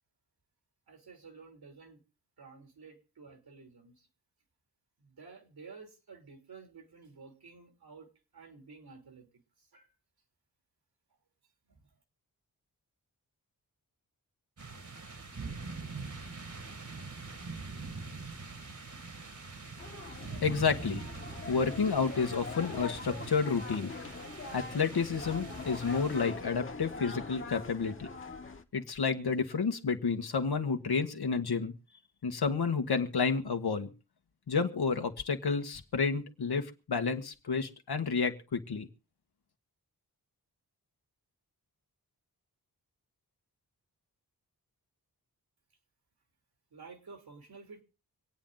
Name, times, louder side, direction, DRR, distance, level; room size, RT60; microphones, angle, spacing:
voice 1, 0.9-2.0 2.4-4.1 5.0-9.3 9.6-9.9 11.7-11.9 46.7-47.8, right 4 dB, 75° right, 5 dB, 3.1 m, -52 dB
sound 1, 14.6-26.4, right 4 dB, 50° right, 2.0 m, -44 dB
sound 2, 19.8-28.6, left 4 dB, 35° left, 1.1 m, -43 dB
voice 2, 20.4-21.0 21.5-23.9 24.5-28.1 28.7-31.7 32.2-33.9 34.5-38.9, left 5 dB, 85° left, 6 dB, 1.5 m, -30 dB
25.5 x 8.9 x 3.9 m, 0.34 s
wide cardioid pair, 85°, 38 cm